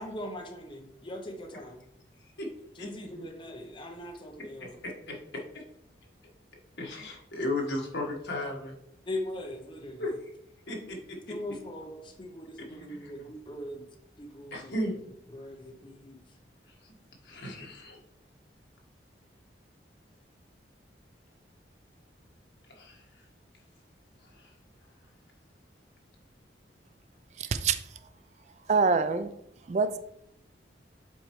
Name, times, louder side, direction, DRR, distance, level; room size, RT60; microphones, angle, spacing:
voice 1, 0.0-1.8 2.8-4.8 9.1-10.1 11.3-13.8 14.2-15.0 15.3-16.2, left 1 dB, 25° left, 3 dB, 0.7 m, -40 dB
voice 2, 4.8-5.2 6.8-8.7 10.0-10.1 10.7-11.0 11.3-11.4 12.7-13.1 14.5-14.9 17.2-18.0 22.8-23.0, left 1 dB, 70° left, -1 dB, 1.5 m, -34 dB
voice 3, 28.7-29.3 29.7-30.0, right 4 dB, 40° right, 11 dB, 0.3 m, -24 dB
7.6 x 4.5 x 3.1 m, 0.76 s
head